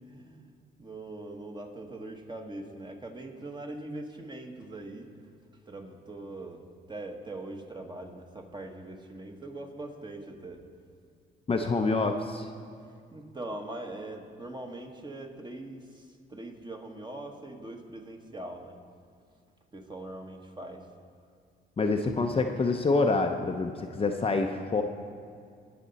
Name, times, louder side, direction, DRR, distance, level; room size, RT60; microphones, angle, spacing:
voice 1, 0.1-0.5 0.8-5.1 5.6-6.6 6.9-10.6 13.1-18.8 19.7-20.9, right 2 dB, 20° right, 3 dB, 1.4 m, -41 dB
voice 2, 11.5-12.5 21.8-24.8, left 3 dB, 30° left, 4 dB, 0.6 m, -26 dB
19.5 x 6.8 x 4.1 m, 2.2 s
cardioid pair, 90°, 20 cm